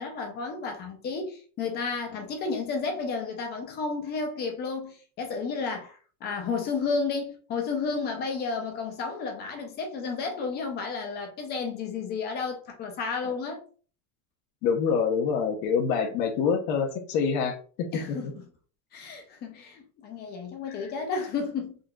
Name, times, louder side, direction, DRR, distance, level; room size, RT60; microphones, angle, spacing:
voice 1, 0.0-13.6 17.9-18.3 18.9-21.8, left 4 dB, 25° left, 0.5 m, -32 dB
voice 2, 14.6-18.3 20.7-20.9, left 6 dB, 50° left, 0.8 m, -26 dB
3.8 x 2.7 x 2.2 m
supercardioid pair, 165°, 41 cm